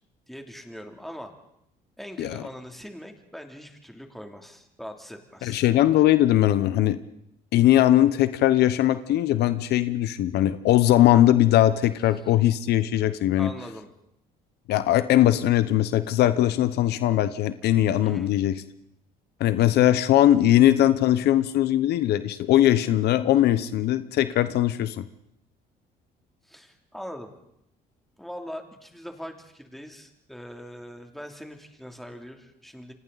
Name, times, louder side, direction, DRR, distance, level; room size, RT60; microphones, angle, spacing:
voice 1, 0.3-1.3 2.0-5.6 13.4-13.9 18.0-18.3 26.4-27.3 28.2-32.9, equal, ahead, 3 dB, 3.1 m, -41 dB
voice 2, 5.4-7.0 7.5-13.5 14.7-18.6 19.4-25.0, left 13 dB, 75° left, 13 dB, 1.0 m, -20 dB
30.0 x 25.0 x 4.2 m, 0.78 s
cardioid pair, 110°, 17 cm